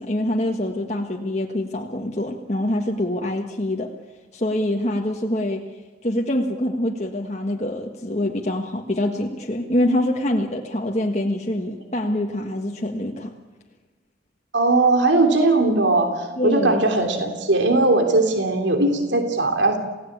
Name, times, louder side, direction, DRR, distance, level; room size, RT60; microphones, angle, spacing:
voice 1, 0.0-3.9 4.3-5.6 6.0-13.3 16.4-16.8, left 1 dB, 35° left, 1 dB, 1.6 m, -25 dB
voice 2, 14.5-19.8, right 2 dB, 70° right, 5 dB, 3.1 m, -19 dB
29.0 x 17.0 x 8.7 m, 1.3 s
head